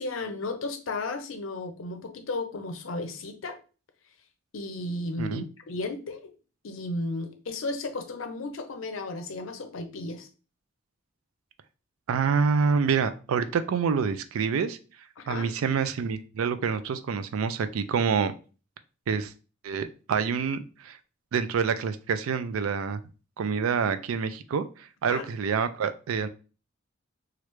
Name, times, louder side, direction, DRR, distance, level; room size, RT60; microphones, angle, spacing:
voice 1, 0.0-3.6 4.5-6.3 6.6-10.3 15.2-15.5 25.1-25.3, left 2 dB, 70° left, 7 dB, 0.6 m, -34 dB
voice 2, 12.1-14.8 15.3-18.3 19.1-19.3 19.6-21.0 21.3-23.0 23.4-24.7 25.0-26.3, right 6 dB, 90° right, 11 dB, 0.4 m, -27 dB
3.1 x 2.4 x 3.1 m, 0.35 s
head